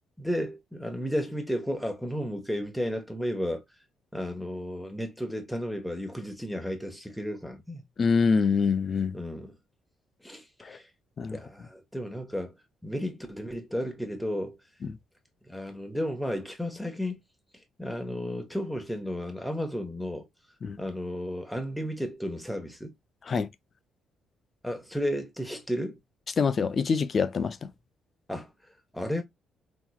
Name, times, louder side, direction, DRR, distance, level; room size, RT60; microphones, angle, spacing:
voice 1, 0.2-3.6 4.1-7.8 9.1-9.5 10.2-10.9 11.3-12.5 12.8-14.6 15.4-17.2 17.8-20.3 20.8-22.9 24.6-26.0 28.3-28.5 28.9-29.2, equal, ahead, 1.1 m, -33 dB
voice 2, 8.0-9.2 10.6-10.8 11.2-11.4 14.8-15.0 20.6-20.8 23.3-23.5 26.4-27.6, left 5 dB, 45° left, 0.5 m, -25 dB
3.7 x 3.0 x 2.3 m
cardioid pair, 90°, 0 cm